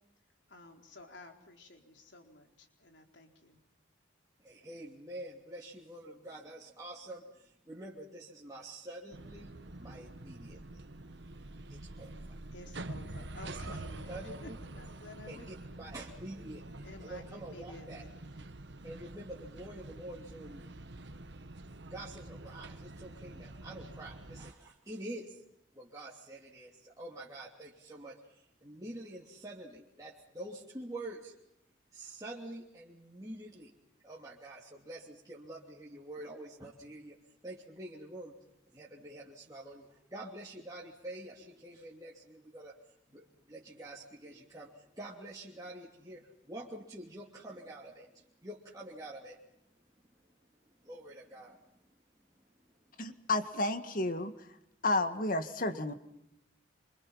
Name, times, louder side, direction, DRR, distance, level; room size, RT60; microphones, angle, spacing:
voice 1, 0.5-3.6 12.5-15.5 16.8-18.4, left 2 dB, 65° left, 3 dB, 4.2 m, -53 dB
voice 2, 4.4-10.8 11.7-12.4 13.4-13.8 14.1-14.6 15.3-16.7 17.0-18.0 18.8-20.7 21.9-25.4 25.7-31.3 31.9-33.7 34.0-37.2 37.4-38.3 38.7-42.8 43.1-49.4 50.8-51.6, right 1 dB, 20° right, -5 dB, 3.1 m, -47 dB
sound 1, 9.1-24.5, right 2 dB, 60° right, 1.2 m, -47 dB
voice 3, 53.0-54.3 54.8-55.9, left 2 dB, 45° left, 9 dB, 1.9 m, -31 dB
27.0 x 26.5 x 5.8 m, 0.82 s
head